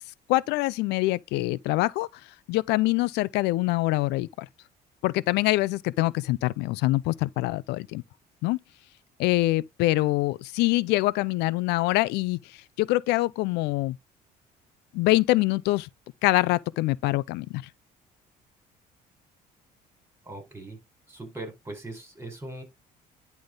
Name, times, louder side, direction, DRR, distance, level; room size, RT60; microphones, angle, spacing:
voice 1, 0.3-2.1 2.5-4.5 5.0-8.0 8.4-8.6 9.2-12.4 12.8-14.0 14.9-15.9 16.2-17.6, left 19 dB, 90° left, 0.4 m, -24 dB
voice 2, 20.2-20.8 21.1-22.6, right 2 dB, 15° right, 4.3 m, -40 dB
10.5 x 3.5 x 3.7 m
cardioid pair, 110°, 17 cm